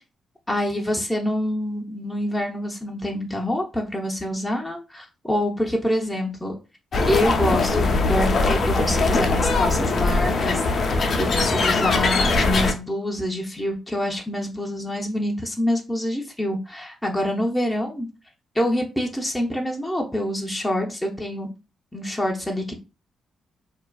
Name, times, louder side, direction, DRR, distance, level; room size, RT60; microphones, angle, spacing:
voice 1, 0.5-6.6 7.1-18.1 18.5-21.5 21.9-22.8, left 1 dB, 5° left, 0 dB, 0.5 m, -26 dB
sound 1, 6.9-12.7, left 3 dB, 55° left, 0.4 m, -21 dB
2.4 x 2.3 x 2.2 m, 0.30 s
cardioid pair, 65°, 0 cm